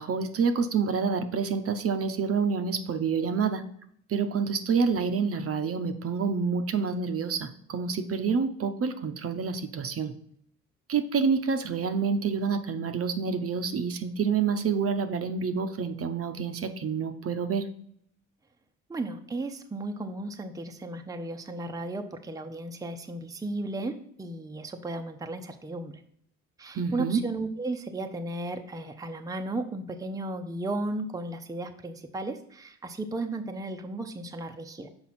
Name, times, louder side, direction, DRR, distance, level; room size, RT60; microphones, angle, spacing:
voice 1, 0.0-3.6 4.1-10.1 10.9-17.6 26.7-27.2, right 5 dB, 50° right, 8 dB, 0.7 m, -28 dB
voice 2, 18.9-26.0 26.6-34.9, right 2 dB, 10° right, 6 dB, 0.6 m, -35 dB
6.1 x 4.7 x 4.2 m, 0.67 s
cardioid pair, 90°, 30 cm